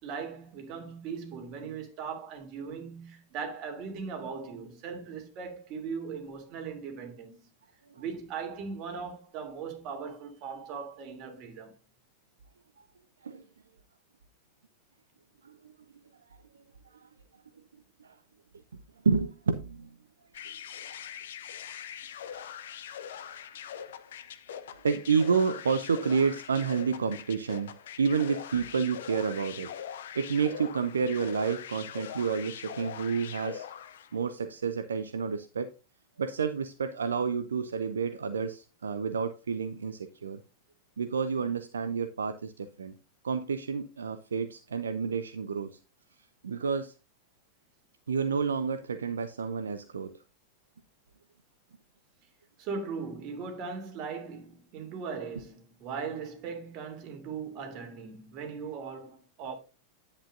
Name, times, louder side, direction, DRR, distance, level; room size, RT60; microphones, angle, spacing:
voice 1, 0.0-7.4 7.9-11.8 52.6-59.6, right 5 dB, 40° right, 2.9 m, -39 dB
voice 2, 15.4-15.8 16.9-17.1 18.0-18.2 19.0-19.9 24.8-29.7 30.1-33.7 34.1-35.7 36.2-40.4 41.0-42.9 43.2-45.8 46.4-46.9 48.1-50.1, right 5 dB, 70° right, 0.6 m, -30 dB
sound 1, 20.3-34.2, left 9 dB, 60° left, 0.8 m, -42 dB
10.0 x 8.3 x 2.6 m
figure-of-eight pair, 90°, 0 cm